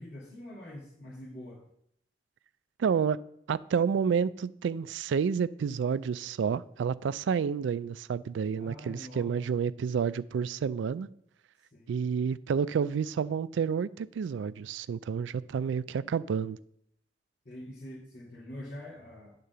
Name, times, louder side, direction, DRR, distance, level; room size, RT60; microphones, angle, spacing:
voice 1, 0.0-1.6 8.5-9.4 11.7-11.9 17.5-19.4, left 1 dB, 55° left, 1.9 m, -45 dB
voice 2, 2.8-3.2 3.5-11.1 11.9-16.6, right 6 dB, 90° right, 0.3 m, -29 dB
9.7 x 3.7 x 6.7 m
head